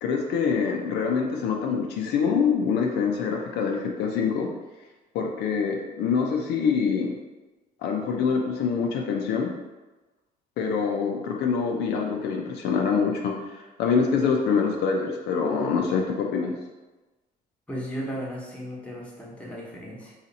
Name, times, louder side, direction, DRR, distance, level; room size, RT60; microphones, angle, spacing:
voice 1, 0.0-4.5 5.1-7.1 7.8-9.5 10.6-16.5, left 5 dB, 75° left, 1 dB, 0.5 m, -25 dB
voice 2, 17.7-20.1, equal, 5° left, -4 dB, 0.9 m, -35 dB
2.8 x 2.4 x 4.0 m, 1.1 s
cardioid pair, 110°, 17 cm